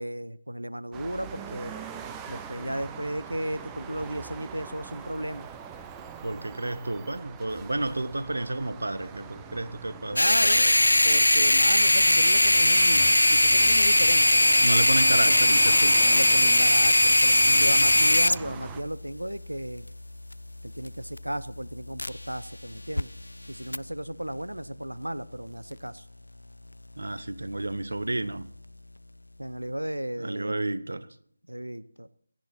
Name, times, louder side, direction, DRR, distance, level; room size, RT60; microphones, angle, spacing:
voice 1, 0.0-1.8 2.3-5.5 10.1-10.6 11.0-14.5 15.3-15.4 16.0-19.9 20.6-23.1 23.5-26.0 29.4-30.7 31.5-32.1, right 1 dB, 85° right, 0.7 m, -34 dB
sound 1, 0.9-18.8, right 6 dB, 10° right, 0.8 m, -42 dB
voice 2, 6.2-10.7 14.6-16.0 17.5-18.1 27.0-28.5 30.2-31.1, right 2 dB, 65° right, 1.0 m, -31 dB
sound 2, 10.2-22.5 22.7-23.0 23.7-23.8, left 1 dB, 75° left, 0.5 m, -20 dB
17.5 x 13.5 x 4.3 m
figure-of-eight pair, 160°, 0 cm